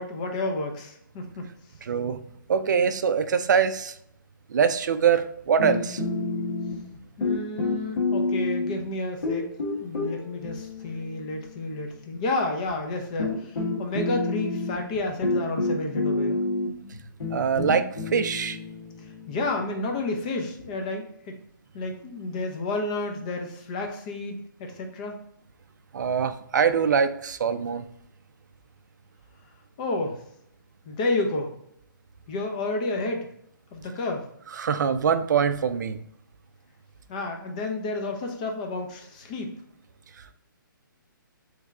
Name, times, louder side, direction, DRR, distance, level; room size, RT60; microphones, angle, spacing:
voice 1, 0.0-1.5 7.2-9.5 9.8-16.4 19.0-21.3 21.7-25.2 29.8-30.2 30.8-31.5 32.3-33.3 33.7-34.3 37.1-39.5, left 2 dB, 20° left, 3 dB, 0.5 m, -31 dB
voice 2, 1.8-2.2 2.5-4.0 4.5-6.0 17.3-18.6 25.9-27.9 34.6-36.0, right 7 dB, 55° right, 11 dB, 0.4 m, -23 dB
sound 1, 5.6-7.0 7.2-8.8 9.2-11.7 12.7-12.8 13.2-20.7, left 2 dB, 75° left, 1.2 m, -29 dB
3.5 x 3.2 x 3.5 m, 0.73 s
hypercardioid pair, 170°, 11 cm